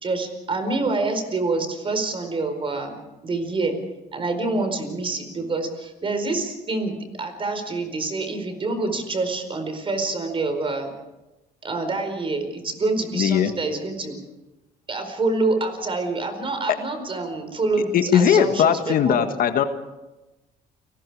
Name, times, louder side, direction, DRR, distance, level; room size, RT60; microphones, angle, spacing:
voice 1, 0.0-3.7 4.1-10.9 11.6-14.2 14.9-19.2, right 3 dB, 30° right, 7 dB, 4.6 m, -26 dB
voice 2, 13.1-13.5 17.9-19.6, left 8 dB, 60° left, 8 dB, 1.7 m, -19 dB
29.5 x 19.5 x 4.9 m, 1.0 s
cardioid pair, 110°, 17 cm